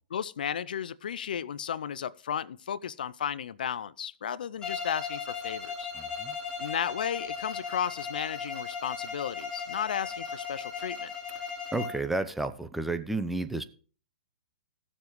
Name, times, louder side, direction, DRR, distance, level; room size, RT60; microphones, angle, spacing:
voice 1, 0.1-5.9 6.6-11.1, left 8 dB, 70° left, 0.4 m, -34 dB
Bowed string instrument, 4.6-12.1, left 6 dB, 15° left, 3.2 m, -37 dB
voice 2, 5.9-6.4 11.7-13.6, right 2 dB, 5° right, 0.7 m, -31 dB
17.0 x 7.1 x 3.2 m
hypercardioid pair, 120°, 5 cm